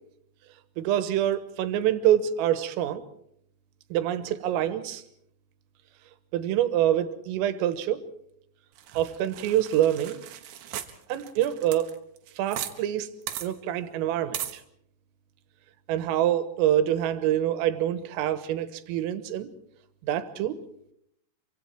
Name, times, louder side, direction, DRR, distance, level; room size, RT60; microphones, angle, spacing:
voice 1, 0.8-3.0 3.9-5.0 6.3-8.0 9.0-10.2 11.1-11.9 12.4-13.1 13.4-14.6 15.9-19.5 20.0-20.6, right 11 dB, 85° right, 12 dB, 3.9 m, -26 dB
sound 1, 8.8-12.7 13.0-13.1 13.3-13.5 14.3-14.6, right 11 dB, 70° right, 3.2 m, -37 dB
27.0 x 24.5 x 4.6 m, 0.71 s
omnidirectional pair, 5.8 m